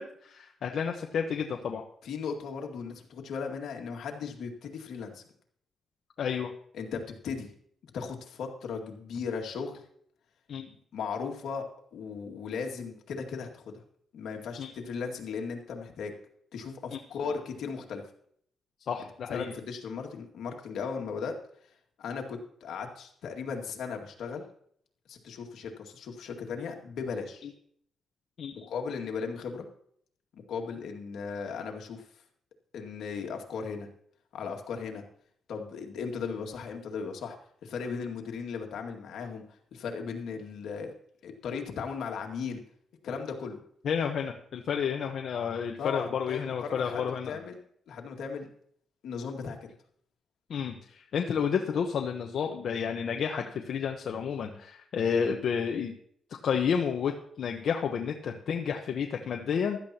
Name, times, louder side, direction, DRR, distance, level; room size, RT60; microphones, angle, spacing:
voice 1, 0.0-1.8 6.2-6.5 10.5-10.7 14.6-14.7 16.9-17.0 18.9-19.5 28.4-28.7 43.8-47.4 50.5-55.9 56.4-59.8, left 7 dB, 65° left, 2 dB, 1.0 m, -31 dB
voice 2, 2.0-5.2 6.7-7.5 7.9-9.8 10.9-11.7 11.9-13.8 14.1-16.1 16.5-18.0 19.3-21.4 22.0-24.5 25.1-27.5 28.5-29.7 30.3-32.0 32.7-33.9 34.3-35.0 35.5-37.4 37.6-39.4 39.7-40.9 41.2-42.6 43.0-43.6 45.8-47.6 47.9-48.5 49.0-49.7, left 5 dB, 85° left, 2 dB, 2.1 m, -37 dB
15.5 x 12.5 x 2.9 m, 0.64 s
cardioid pair, 105°, 0 cm